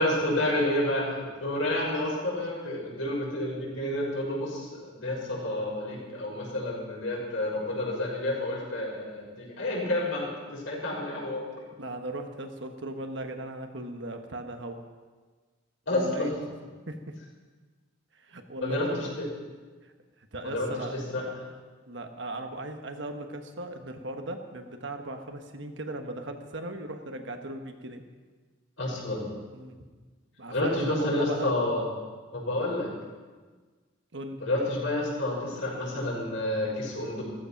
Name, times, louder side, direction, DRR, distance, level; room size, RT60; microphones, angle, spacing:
voice 1, 0.0-11.4 15.9-16.3 18.6-19.3 20.4-21.2 28.8-29.3 30.5-31.9 32.3-32.9 34.4-37.2, left 1 dB, 75° left, -4 dB, 6.4 m, -29 dB
voice 2, 11.8-14.9 15.9-16.5 16.9-17.1 18.1-19.0 19.8-21.0 21.9-28.0 29.5-29.8 30.4-31.5 34.1-34.4, right 1 dB, 60° right, 5 dB, 1.4 m, -38 dB
15.5 x 14.5 x 5.9 m, 1.4 s
head